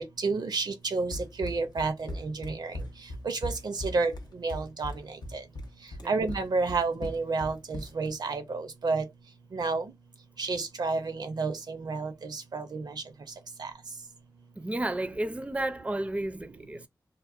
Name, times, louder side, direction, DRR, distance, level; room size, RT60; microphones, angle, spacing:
voice 1, 0.0-2.7 3.3-4.1 4.4-4.9 6.1-9.0 9.5-9.8 10.4-12.1 12.5-12.9 13.6-13.7, right 4 dB, 75° right, 0.5 m, -30 dB
Run, 1.1-8.1, left 1 dB, 80° left, 0.5 m, -39 dB
voice 2, 14.6-16.9, right 1 dB, 20° right, 0.4 m, -32 dB
2.7 x 2.1 x 2.4 m
cardioid pair, 45°, 7 cm